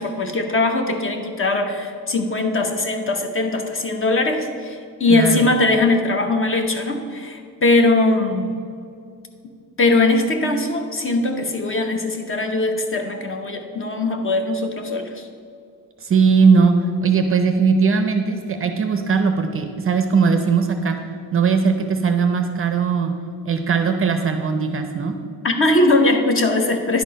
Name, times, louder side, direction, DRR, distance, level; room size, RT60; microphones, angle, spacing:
voice 1, 0.0-8.5 9.8-15.3 25.4-27.0, left 2 dB, 35° left, 5 dB, 0.7 m, -20 dB
voice 2, 5.1-5.5 16.0-21.0 21.3-23.1 23.4-25.1, right 5 dB, 35° right, 6 dB, 0.5 m, -19 dB
10.5 x 4.4 x 5.0 m, 2.3 s
wide cardioid pair, 175°, 40 cm